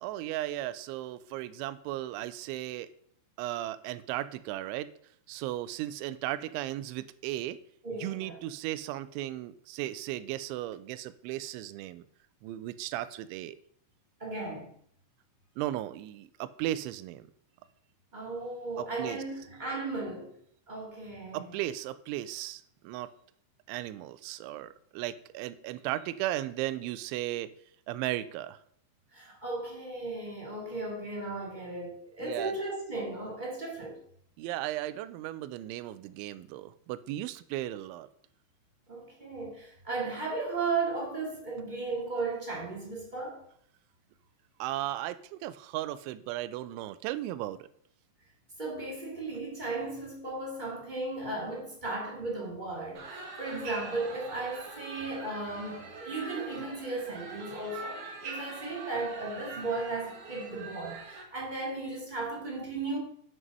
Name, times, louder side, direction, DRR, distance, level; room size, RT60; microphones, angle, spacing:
voice 1, 0.0-2.9 3.4-4.9 5.3-7.6 8.0-12.0 12.4-13.6 15.6-17.3 18.8-19.2 21.3-23.1 23.7-27.5 27.9-28.6 32.2-32.5 34.4-38.1 44.6-47.7, right 14 dB, 85° right, 2.9 m, -36 dB
voice 2, 7.8-8.4 14.2-14.7 18.1-20.3 20.7-21.5 29.1-34.0 38.9-43.4 48.6-63.0, right 3 dB, 20° right, 1.1 m, -35 dB
sound 1, 53.0-61.2, right 4 dB, 55° right, 2.7 m, -43 dB
9.4 x 6.2 x 5.4 m
omnidirectional pair, 5.4 m